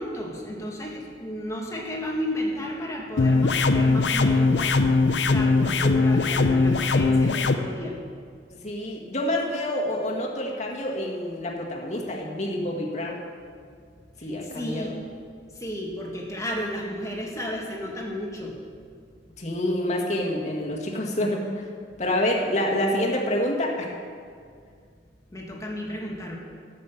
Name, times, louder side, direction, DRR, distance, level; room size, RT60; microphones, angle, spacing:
voice 1, 0.0-8.0 14.2-15.0 15.5-18.6 25.3-26.4, equal, 20° left, -2 dB, 2.0 m, -33 dB
sound 1, 3.2-7.6, left 3 dB, 75° left, 0.7 m, -20 dB
voice 2, 8.5-13.2 14.2-14.9 19.4-21.7 22.0-23.9, left 1 dB, 40° left, -1 dB, 1.9 m, -27 dB
13.0 x 7.7 x 7.3 m, 2.1 s
head